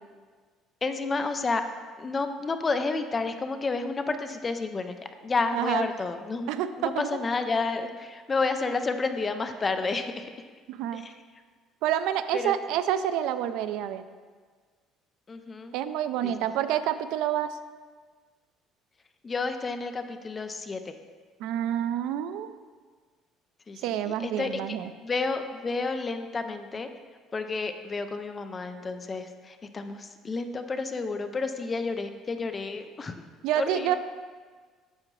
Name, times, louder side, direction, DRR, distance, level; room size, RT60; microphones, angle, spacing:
voice 1, 0.8-1.6 2.0-5.0 5.2-6.5 6.8-10.3 10.9-11.1 12.3-12.5 15.3-15.7 16.2-16.3 19.2-20.9 23.7-23.8 24.0-24.8 25.0-26.9 27.3-33.1 33.5-34.0, left 3 dB, 20° left, 8 dB, 0.4 m, -30 dB
voice 2, 5.5-5.9 6.5-7.1 10.7-11.0 11.8-14.0 15.7-17.6 21.4-22.6 23.8-24.9 33.4-34.0, right 11 dB, 70° right, 12 dB, 0.4 m, -28 dB
8.7 x 6.7 x 3.1 m, 1.5 s
cardioid pair, 175°, 0 cm